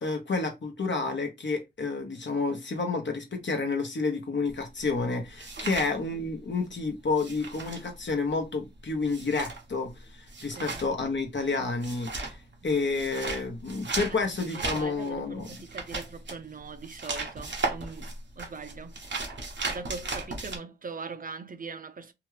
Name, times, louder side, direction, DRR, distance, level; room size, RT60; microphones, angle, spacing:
voice 1, 0.0-12.4 12.6-15.5, left 3 dB, 85° left, 0.8 m, -30 dB
sound 1, 4.5-6.7 6.9-20.6, right 3 dB, 90° right, 0.8 m, -36 dB
voice 2, 14.1-19.0 19.6-22.1, right 4 dB, 50° right, 0.4 m, -41 dB
2.9 x 2.3 x 3.1 m
wide cardioid pair, 60°, 18 cm